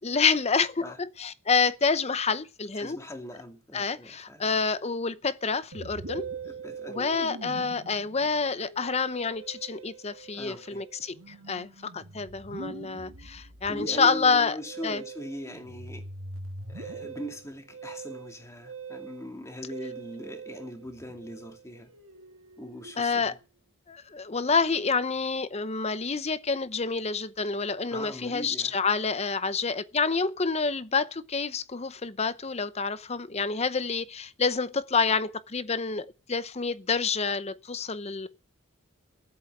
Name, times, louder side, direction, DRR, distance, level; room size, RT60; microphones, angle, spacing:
voice 1, 0.0-3.0 3.7-6.3 6.9-14.6 14.8-15.0 23.0-23.4 23.9-38.3, left 5 dB, 30° left, 0.7 m, -28 dB
voice 2, 2.7-4.4 6.4-7.2 10.3-10.8 13.7-16.0 16.7-21.9 22.6-23.4 27.9-28.8, equal, 15° left, 2.2 m, -40 dB
Musical instrument, 5.7-23.3, right 4 dB, 70° right, 1.8 m, -43 dB
14.5 x 8.2 x 7.8 m
head